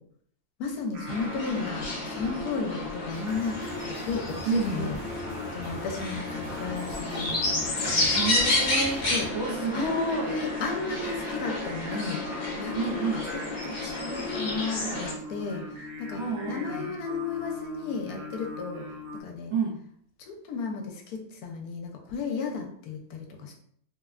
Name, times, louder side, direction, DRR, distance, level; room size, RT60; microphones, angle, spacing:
voice 1, 0.6-5.0 5.5-8.1 9.1-9.3 9.7-12.2 12.6-12.9 13.6-16.2 16.5-18.9 19.1-19.5 20.2-23.5, left 4 dB, 80° left, 2 dB, 1.1 m, -34 dB
Singing, 0.9-19.2, left 2 dB, 80° right, 1.2 m, -41 dB
sound 1, 1.1-15.1, left 2 dB, 45° left, 1.0 m, -31 dB
sound 2, 3.1-9.3, right 1 dB, 30° right, 0.9 m, -44 dB
voice 2, 4.5-4.9 8.1-10.4 12.7-13.3 16.2-16.9 19.5-19.8, right 4 dB, 65° right, -3 dB, 0.8 m, -30 dB
3.1 x 2.2 x 2.3 m, 0.65 s
omnidirectional pair, 1.6 m